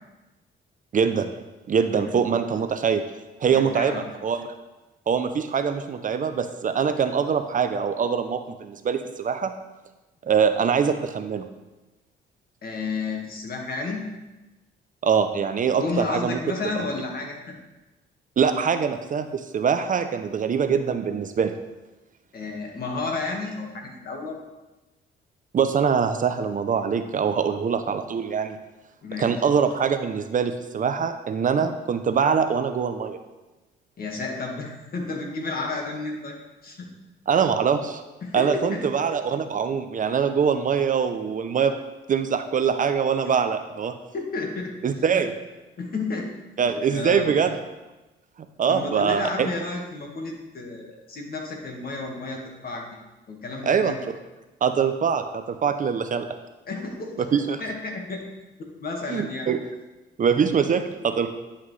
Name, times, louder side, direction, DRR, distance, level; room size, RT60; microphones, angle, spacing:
voice 1, 0.9-1.3 1.7-3.0 3.4-4.5 5.1-9.5 10.2-11.5 15.0-16.4 16.7-16.9 18.4-21.6 25.5-28.6 29.2-33.2 37.3-38.0 38.3-41.7 42.1-43.9 44.8-45.3 46.6-47.5 48.6-49.5 53.6-54.0 54.6-56.3 57.2-57.6 59.1-59.6 60.2-61.3, right 6 dB, 40° right, 8 dB, 0.5 m, -23 dB
voice 2, 3.5-4.0 12.6-14.1 15.7-17.5 22.3-24.5 29.0-29.3 34.0-36.4 36.6-36.8 38.2-38.8 44.1-44.7 45.8-46.3 46.9-47.3 48.7-53.0 53.3-54.0 56.7-57.1 57.6-58.3 58.8-59.5, left 3 dB, 50° left, 1 dB, 1.7 m, -31 dB
9.7 x 5.7 x 3.2 m, 1.1 s
cardioid pair, 90°, 20 cm